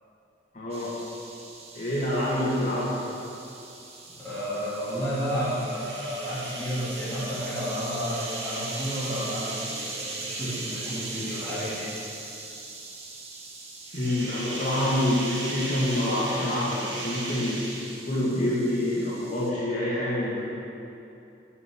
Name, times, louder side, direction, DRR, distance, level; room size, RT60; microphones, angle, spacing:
voice 1, 0.5-0.9 1.7-3.0 13.9-17.6 18.1-20.4, left 1 dB, 40° left, -7 dB, 2.2 m, -26 dB
sound 1, 0.7-19.5, right 3 dB, 35° right, 1.2 m, -42 dB
voice 2, 4.2-11.9, equal, 10° left, -12 dB, 3.1 m, -31 dB
sound 2, 4.7-12.4 13.8-18.2, right 2 dB, 80° right, 2.3 m, -38 dB
9.6 x 6.6 x 8.2 m, 2.7 s
head